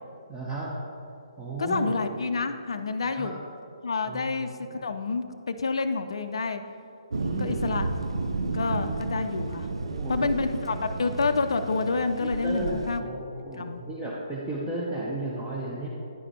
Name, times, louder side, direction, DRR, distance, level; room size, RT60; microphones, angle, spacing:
voice 1, 0.3-0.8 1.4-2.0 3.1-3.3 4.0-4.3 4.6-4.9 7.1-7.6 9.8-10.7 12.2-15.9, right 2 dB, 10° right, -7 dB, 0.9 m, -34 dB
voice 2, 1.6-3.4 3.8-6.6 7.4-7.9 8.4-9.7 10.1-13.0 13.6-13.8, left 4 dB, 65° left, 8 dB, 0.5 m, -28 dB
Thunder, 7.1-13.0, right 3 dB, 70° right, 0.4 m, -32 dB
9.9 x 4.9 x 4.2 m, 2.5 s
figure-of-eight pair, 135°, 3 cm